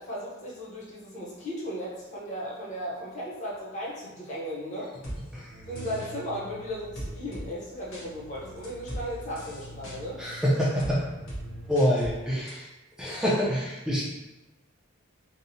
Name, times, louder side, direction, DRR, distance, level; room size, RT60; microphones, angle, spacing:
voice 1, 0.0-4.9 5.7-10.2 10.5-10.6, equal, 35° left, -5 dB, 0.6 m, -36 dB
sound 1, 5.0-5.2 5.8-6.1 7.0-7.5 7.9-8.0 8.6-9.0 9.4-10.0 10.8-10.9 11.3-11.4 11.8-12.1 12.5-12.6, equal, 85° left, 0.9 m, -38 dB
sound 2, 5.5-11.8, right 1 dB, 70° right, 0.4 m, -46 dB
voice 2, 10.2-11.0 11.7-12.7 13.0-14.0, equal, 5° right, -8 dB, 0.3 m, -26 dB
2.8 x 2.0 x 2.6 m, 1.0 s
head